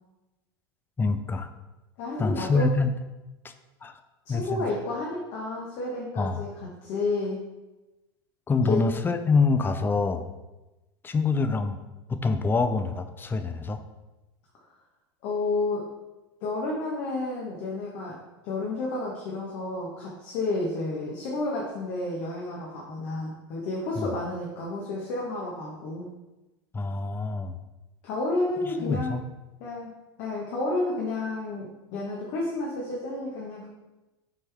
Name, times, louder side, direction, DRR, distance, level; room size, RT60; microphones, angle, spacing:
voice 1, 1.0-1.5 2.2-2.9 3.4-3.5 3.8-4.0 4.3-4.7 6.2-6.4 8.5-10.3 11.0-11.8 12.1-13.8 24.0-24.1 26.7-27.6 28.8-29.2, left 4 dB, 15° left, 9 dB, 0.5 m, -25 dB
voice 2, 2.0-2.7 4.2-7.4 8.6-8.8 15.2-15.8 16.4-18.2 18.4-26.1 28.0-29.1 29.6-29.9 30.2-33.7, left 2 dB, 55° left, -3 dB, 1.5 m, -31 dB
7.1 x 4.6 x 3.5 m, 1.1 s
hypercardioid pair, 90°, 13 cm